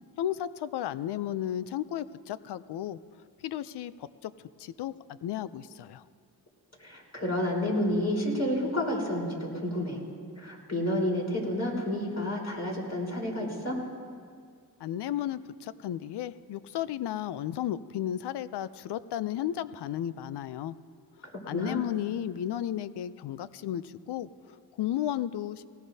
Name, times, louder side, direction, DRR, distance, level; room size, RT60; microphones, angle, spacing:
voice 1, 0.2-3.0 3.4-4.3 4.6-6.0 14.8-20.7 21.2-25.7, left 11 dB, 85° left, 15 dB, 0.5 m, -34 dB
voice 2, 6.8-10.0 10.4-13.8 21.5-21.8, left 1 dB, 40° left, -2 dB, 4.1 m, -30 dB
19.5 x 18.0 x 2.7 m, 2.1 s
cardioid pair, 65°, 39 cm